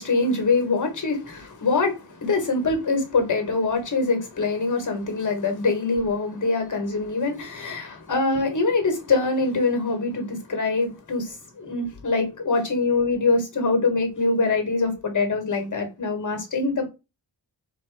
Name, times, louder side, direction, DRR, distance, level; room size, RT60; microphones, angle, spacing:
voice 1, 0.0-16.9, left 3 dB, 45° left, 1.4 m, -24 dB
3.8 x 2.9 x 4.7 m
wide cardioid pair, 145°, 43 cm